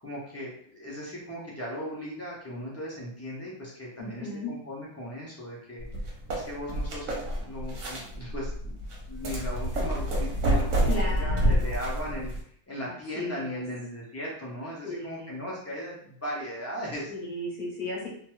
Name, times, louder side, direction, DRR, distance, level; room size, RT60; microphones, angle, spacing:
voice 1, 0.0-5.9 6.3-8.8 9.0-12.3 12.7-17.1, equal, 25° left, -5 dB, 0.3 m, -37 dB
voice 2, 4.0-4.5 10.8-11.8 12.8-13.6 14.8-15.3 17.1-18.1, left 2 dB, 40° left, -3 dB, 0.8 m, -35 dB
sound 1, 5.8-12.4, right 1 dB, 60° right, 1.0 m, -28 dB
2.5 x 2.2 x 2.9 m, 0.63 s
omnidirectional pair, 1.6 m